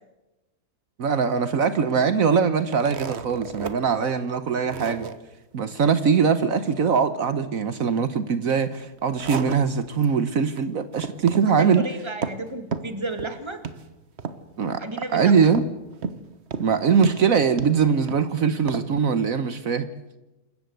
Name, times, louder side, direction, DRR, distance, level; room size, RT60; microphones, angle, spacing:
voice 1, 1.0-5.1 5.5-11.8 14.6-14.8 15.1-15.6 16.6-19.9, right 6 dB, 65° right, 11 dB, 1.4 m, -22 dB
sound 1, 2.6-3.7 4.1-4.2 4.7-5.2 8.8-10.1 10.4-10.6 10.9-11.5 11.8-12.4 12.7-13.4 13.6-13.8 14.2-14.6 15.5-16.2 16.5-16.7 17.0-18.2 18.7-18.9, right 5 dB, 45° right, 1.4 m, -32 dB
voice 2, 11.5-13.6 14.8-15.4, right 2 dB, 20° right, 7 dB, 2.2 m, -32 dB
27.5 x 14.5 x 8.1 m, 1.0 s
omnidirectional pair, 1.6 m